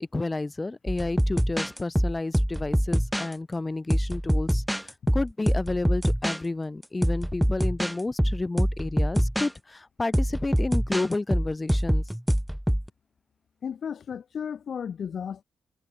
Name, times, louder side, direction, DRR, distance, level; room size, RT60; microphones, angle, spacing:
voice 1, 0.0-12.0, left 2 dB, 15° left, 2.8 m, -31 dB
sound 1, 0.9-3.3 3.9-6.4 6.8-9.5 10.1-12.9, equal, ahead, 0.5 m, -25 dB
voice 2, 13.6-15.4, left 7 dB, 50° left, 1.2 m, -34 dB
cardioid pair, 130°, 0 cm